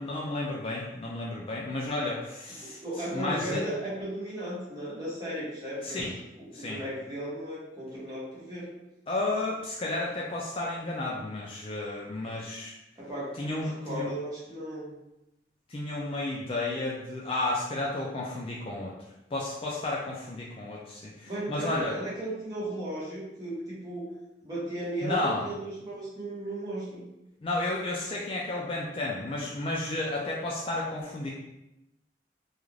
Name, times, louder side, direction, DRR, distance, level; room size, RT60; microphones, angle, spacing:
voice 1, 0.0-2.8 3.1-3.6 5.8-6.1 6.5-6.8 9.1-12.7 13.4-14.1 15.7-18.9 19.3-22.0 25.0-25.5 27.4-31.3, left 2 dB, 30° left, -4 dB, 0.3 m, -32 dB
voice 2, 2.8-6.1 6.4-8.7 13.0-14.9 21.2-24.1 24.4-27.0, right 1 dB, 20° right, -9 dB, 1.0 m, -35 dB
2.4 x 2.4 x 3.1 m, 0.91 s
head